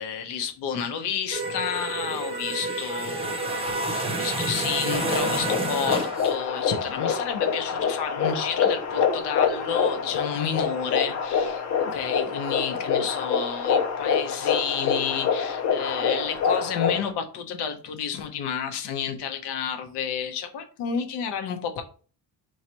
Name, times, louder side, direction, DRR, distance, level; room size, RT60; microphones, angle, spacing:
voice 1, 0.0-21.8, left 7 dB, 90° left, 6 dB, 0.9 m, -31 dB
sound 1, 1.3-6.3, right 2 dB, 15° right, 0.6 m, -29 dB
sound 2, 4.9-17.1, left 6 dB, 45° left, 0.7 m, -26 dB
4.7 x 3.2 x 2.8 m, 0.39 s
cardioid pair, 160°, 39 cm